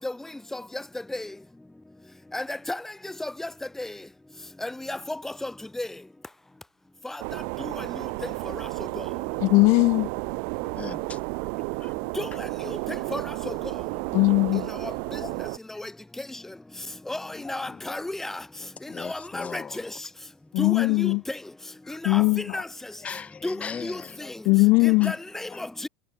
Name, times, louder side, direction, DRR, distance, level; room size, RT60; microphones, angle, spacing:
voice 1, 2.3-2.8 3.2-3.5 3.8-3.9 4.6-5.0 5.4-5.5 5.8-5.9 12.2-12.3 13.1-13.2 13.5-13.6 17.1-18.4 19.0-19.6 20.6-21.1 22.0-22.2 22.5-22.6 23.4-23.6 23.8-24.0 25.0-25.9, left 2 dB, 5° left, 4.2 m, -32 dB
sound 1, 7.2-15.6, right 40 dB or more, 70° right, 4.2 m, -32 dB
voice 2, 9.4-10.1 14.1-14.6 20.5-21.2 22.1-22.4 24.5-25.1, left 25 dB, 60° left, 0.5 m, -19 dB
voice 3, 10.8-11.2 11.8-11.9 14.8-15.6 17.3-18.0 18.9-20.0 21.8-22.0 23.0-24.3 25.0-25.2 25.5-25.7, left 6 dB, 25° left, 1.7 m, -40 dB
supercardioid pair, 130°, 5 cm